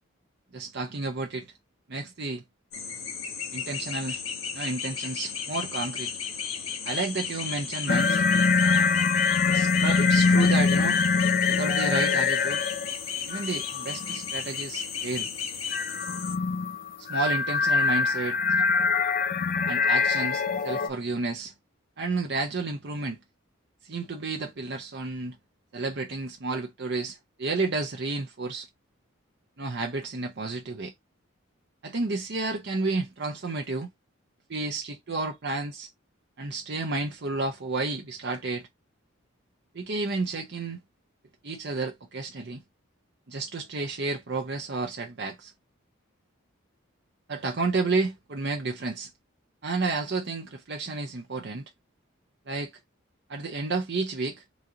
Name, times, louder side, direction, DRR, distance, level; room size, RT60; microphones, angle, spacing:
voice 1, 0.5-1.5 1.9-2.4 3.5-4.2 4.5-6.1 6.8-8.3 9.5-11.0 11.5-12.7 13.3-15.3 17.0-18.4 19.7-21.5 22.0-23.2 23.8-25.4 25.7-28.7 29.6-30.9 31.8-33.9 34.5-35.9 36.4-38.7 39.7-40.8 41.4-42.6 43.3-45.5 47.3-49.1 49.6-51.6 52.5-52.7 53.3-54.4, right 3 dB, 55° right, 0.7 m, -31 dB
sound 1, 2.7-16.3, left 7 dB, 85° left, 1.2 m, -34 dB
sound 2, 7.9-13.0 13.3-14.2 15.7-20.9, left 4 dB, 45° left, 0.4 m, -23 dB
4.1 x 2.8 x 3.7 m
head